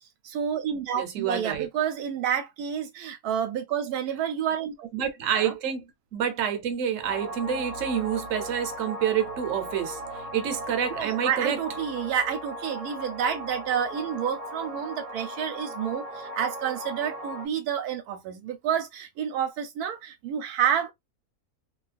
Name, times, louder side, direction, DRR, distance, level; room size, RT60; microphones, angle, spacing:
voice 1, 0.2-4.9 5.3-5.5 10.9-20.9, right 8 dB, 85° right, 1.1 m, -29 dB
voice 2, 1.0-1.7 4.9-5.8 6.1-11.6, right 8 dB, 60° right, 1.1 m, -28 dB
sound 1, 7.0-17.5, equal, 30° right, 0.8 m, -37 dB
2.8 x 2.3 x 2.4 m
omnidirectional pair, 1.6 m